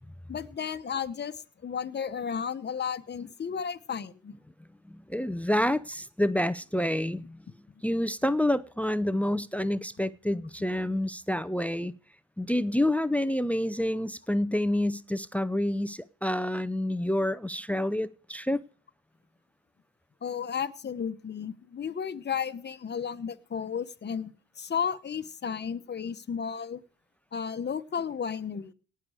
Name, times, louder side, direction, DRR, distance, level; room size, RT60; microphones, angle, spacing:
voice 1, 0.3-4.3 20.2-26.8 27.3-28.7, left 7 dB, 35° left, 1.0 m, -33 dB
voice 2, 4.8-7.4 7.8-11.9 12.4-18.6, left 1 dB, 5° left, 0.5 m, -28 dB
18.5 x 6.8 x 4.9 m
cardioid pair, 90°, 30 cm